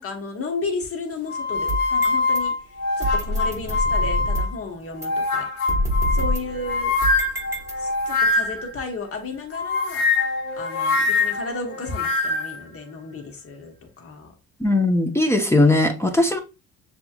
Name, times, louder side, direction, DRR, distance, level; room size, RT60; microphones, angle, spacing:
voice 1, 0.0-2.5 3.0-5.5 6.1-6.9 7.8-10.1 10.6-14.3, left 3 dB, 40° left, 1.3 m, -33 dB
sound 1, 1.3-4.6 5.0-8.7 9.5-12.6, left 3 dB, 55° left, 1.3 m, -23 dB
sound 2, 1.5-2.4 3.0-4.6 5.0-5.1 5.7-8.1, equal, 10° right, 1.1 m, -27 dB
voice 2, 14.6-16.4, left 2 dB, 5° left, 0.8 m, -19 dB
6.7 x 3.0 x 2.4 m
supercardioid pair, 85°, 35 cm